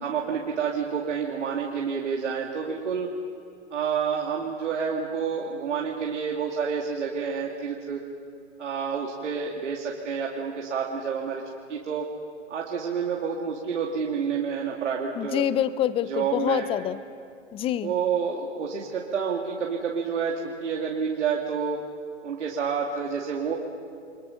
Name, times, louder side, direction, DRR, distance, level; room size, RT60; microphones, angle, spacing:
voice 1, 0.0-3.1 3.7-8.0 8.6-11.4 11.7-12.1 12.5-15.5 16.1-16.7 17.8-21.8 22.2-23.5, right 6 dB, 75° right, -1 dB, 2.4 m, -29 dB
voice 2, 15.2-17.0 17.5-17.9, left 11 dB, 15° left, 16 dB, 0.6 m, -26 dB
30.0 x 23.0 x 5.7 m, 2.4 s
hypercardioid pair, 115°, 36 cm